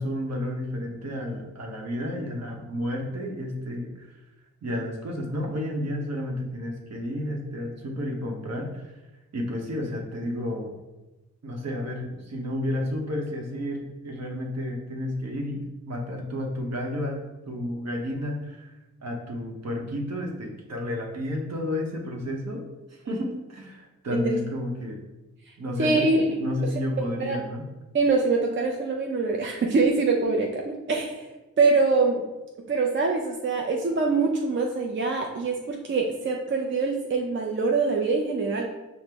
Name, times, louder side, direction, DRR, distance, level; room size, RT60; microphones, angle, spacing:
voice 1, 0.0-4.2 4.6-8.9 9.3-10.7 11.4-18.7 19.0-22.6 22.9-25.0 25.6-26.1 26.4-27.6, left 1 dB, 60° right, 0 dB, 0.9 m, -31 dB
voice 2, 25.8-26.3 27.2-27.4 27.9-31.2 31.6-32.3 32.7-38.7, right 3 dB, 40° right, 0 dB, 0.5 m, -24 dB
5.7 x 2.1 x 3.4 m, 1.1 s
cardioid pair, 60°, 30 cm